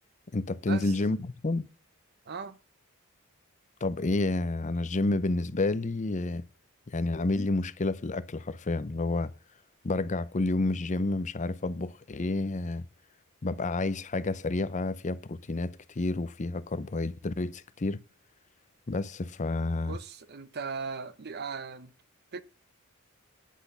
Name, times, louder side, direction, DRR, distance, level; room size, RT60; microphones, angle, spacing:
voice 1, 0.3-1.7 3.8-6.4 6.9-9.3 9.8-12.9 13.4-18.0 18.9-20.0, left 2 dB, 35° left, 0.6 m, -30 dB
voice 2, 2.3-2.6 19.9-21.9 22.3-22.4, right 5 dB, 50° right, 0.8 m, -38 dB
10.0 x 6.2 x 6.9 m
head